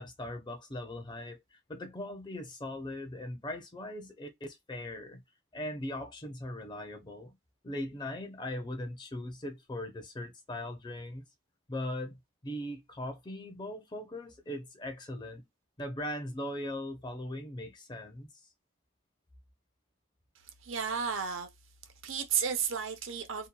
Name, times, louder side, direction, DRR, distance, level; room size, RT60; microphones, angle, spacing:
voice 1, 0.0-5.2 5.5-7.4 7.6-11.2 11.7-15.4 15.8-18.4, left 1 dB, 20° left, 0.5 m, -39 dB
voice 2, 20.6-21.5 22.0-23.5, right 7 dB, 75° right, 0.6 m, -32 dB
2.8 x 2.2 x 2.2 m
head